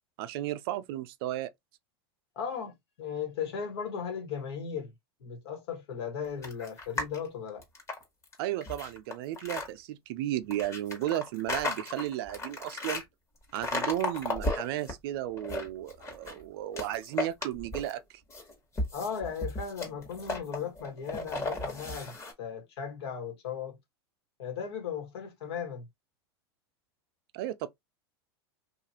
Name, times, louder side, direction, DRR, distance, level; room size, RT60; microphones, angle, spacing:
voice 1, 0.2-1.5 8.4-13.0 13.5-18.2 27.3-27.7, right 13 dB, 65° right, 0.5 m, -34 dB
voice 2, 2.3-4.9 5.2-7.6 18.9-23.8 24.4-25.9, left 7 dB, 75° left, 1.3 m, -37 dB
sound 1, 6.4-7.2 7.6-9.7 10.5-13.0 13.5-14.9 15.3-16.4 16.7-18.0 18.3-22.3, left 2 dB, 20° left, 1.1 m, -35 dB
2.8 x 2.4 x 2.8 m
hypercardioid pair, 100°, 14 cm